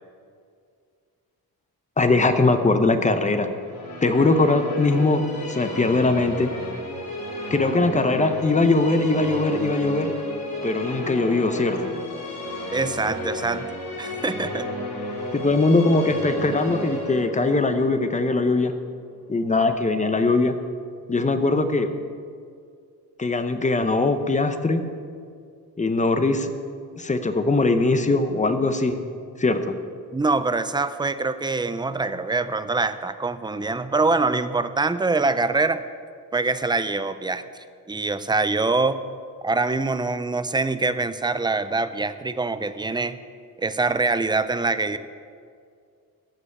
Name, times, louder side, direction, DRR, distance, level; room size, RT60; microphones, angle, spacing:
voice 1, 2.0-3.5 4.0-5.2 5.5-6.5 7.5-10.1 10.6-11.9 15.3-18.7 19.3-20.6 21.1-21.9 23.2-24.8 25.8-26.5 27.0-29.0 29.4-29.8, left 3 dB, 20° left, 8 dB, 0.7 m, -21 dB
Musical instrument, 3.5-19.0, left 1 dB, 65° left, 3.7 m, -32 dB
voice 2, 12.7-14.7 30.1-35.8 36.3-37.4 37.9-39.0 39.4-43.2 43.6-45.0, right 3 dB, 10° right, 12 dB, 0.4 m, -24 dB
14.5 x 5.5 x 8.7 m, 2.3 s
wide cardioid pair, 155°, 38 cm